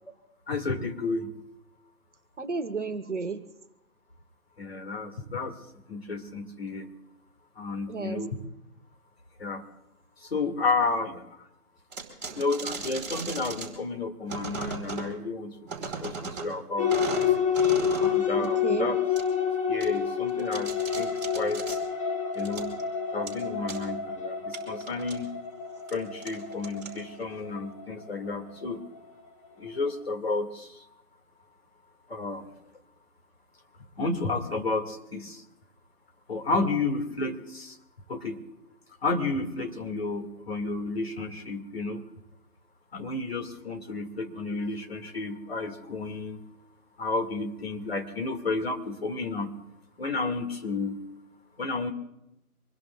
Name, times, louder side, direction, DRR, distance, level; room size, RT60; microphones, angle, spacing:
voice 1, 0.5-1.3 4.6-5.5 5.9-6.9 7.6-8.4 9.4-9.6 10.3-11.2 12.4-17.2 18.0-19.0 19.7-20.7 21.0-21.1 21.3-21.8 22.4-22.7 23.1-25.3 25.9-28.8 29.6-30.7 32.1-32.4 34.0-35.4 36.3-37.7 38.1-38.4 39.0-42.0 42.9-46.4 47.0-49.5 50.0-51.0 51.6-51.9, left 3 dB, 40° left, 3 dB, 2.2 m, -31 dB
voice 2, 2.4-3.4 7.9-8.2 12.2-12.4 18.4-18.9, right 4 dB, 50° right, 9 dB, 1.3 m, -33 dB
sound 1, 11.9-13.7 14.3-15.1 15.7-16.5 16.9-18.2 18.4-18.5 19.2-19.3 19.8-19.9 20.3-21.8 22.3-22.8 23.3-23.4 23.7-23.8 24.5-25.2 25.8-25.9 26.2-27.2, right 5 dB, 25° right, 4.3 m, -37 dB
sound 2, 16.8-28.7, left 7 dB, 20° left, 1.2 m, -29 dB
25.5 x 21.0 x 2.4 m, 0.83 s
figure-of-eight pair, 160°, 46 cm